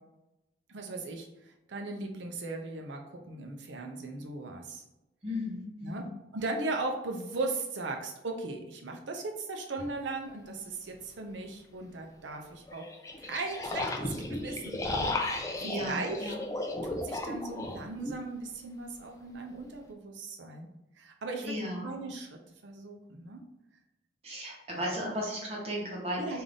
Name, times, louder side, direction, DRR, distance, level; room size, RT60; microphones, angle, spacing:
voice 1, 0.7-4.8 5.8-6.0 6.3-12.8 13.2-16.2 16.8-20.7 21.0-21.5 21.8-23.4 26.2-26.4, right 3 dB, 80° right, 3 dB, 0.6 m, -38 dB
voice 2, 5.2-6.1 15.6-16.4 21.4-21.9 24.2-26.4, equal, 35° right, -3 dB, 1.0 m, -35 dB
sound 1, 9.8-9.9 12.7-18.2, left 2 dB, 15° left, 0.3 m, -35 dB
3.7 x 2.5 x 3.4 m, 0.93 s
head